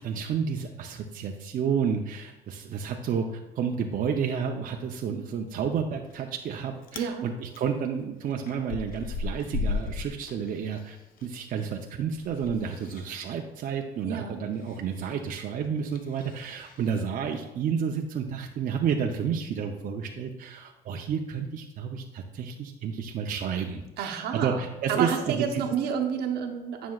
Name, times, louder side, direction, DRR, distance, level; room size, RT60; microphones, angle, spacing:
voice 1, 0.0-3.3 3.6-11.0 11.2-25.6, right 7 dB, 55° right, 2 dB, 0.6 m, -30 dB
Chewing mastication, 6.1-6.5 6.8-7.1 7.5-11.3 11.6-17.0, left 4 dB, 55° left, 0.7 m, -37 dB
voice 2, 7.0-7.3 14.0-14.4 24.0-24.6 24.9-26.9, right 7 dB, 75° right, 3 dB, 0.9 m, -30 dB
9.4 x 6.0 x 2.3 m, 1.0 s
cardioid pair, 110°, 17 cm